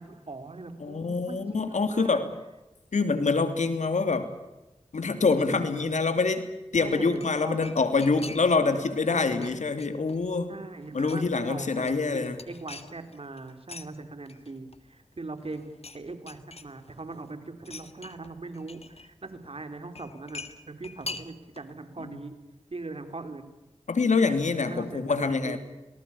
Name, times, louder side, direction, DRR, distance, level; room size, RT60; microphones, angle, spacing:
voice 1, 0.0-2.2 5.0-5.6 6.7-7.7 8.8-9.6 10.5-22.4 22.7-23.5 24.2-25.6, right 3 dB, 50° right, 8 dB, 4.2 m, -40 dB
voice 2, 0.8-2.3 2.9-4.3 4.9-6.5 6.7-10.5 10.9-12.4 22.0-22.2 23.9-25.6, left 4 dB, 80° left, 9 dB, 2.9 m, -25 dB
sound 1, 7.1-8.7 9.0-10.4 10.7-11.4 11.7-13.9 14.3-15.1 15.4-16.0 16.3-17.1 17.6-19.1 20.0-21.7 22.0-22.1, left 3 dB, 55° left, 1.9 m, -44 dB
27.5 x 19.0 x 8.7 m, 0.99 s
cardioid pair, 50°, 12 cm